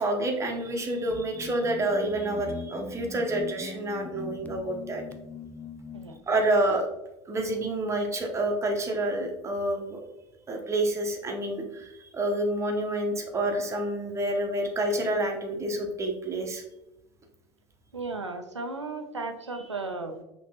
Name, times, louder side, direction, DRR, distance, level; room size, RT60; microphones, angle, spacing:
voice 1, 0.0-5.0 6.3-6.8 7.3-10.0 10.5-16.6, right 1 dB, 20° right, 2 dB, 0.9 m, -28 dB
sound 1, 1.0-6.2, left 4 dB, 10° left, 0.4 m, -41 dB
voice 2, 17.9-20.2, right 3 dB, 85° right, 6 dB, 0.4 m, -35 dB
5.9 x 3.1 x 2.9 m, 0.92 s
figure-of-eight pair, 75°, 15 cm